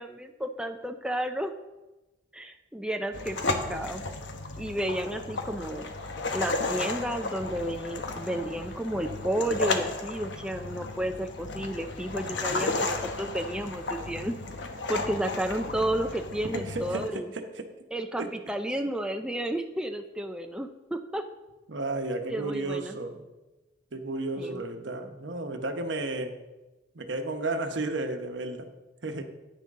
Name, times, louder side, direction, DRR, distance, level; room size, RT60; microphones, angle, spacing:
voice 1, 0.0-1.5 2.3-4.0 4.6-5.8 6.3-14.4 14.9-17.3 17.9-21.3 22.3-23.0 24.4-24.6, right 1 dB, 5° right, 5 dB, 0.4 m, -32 dB
sound 1, 3.1-17.1, left 3 dB, 75° left, 1.0 m, -34 dB
voice 2, 12.2-12.9 16.5-17.7 18.2-18.3 21.7-23.3 23.9-26.4 26.9-28.7 29.0-29.2, right 2 dB, 75° right, 6 dB, 1.0 m, -33 dB
9.8 x 9.5 x 3.6 m, 1.1 s
head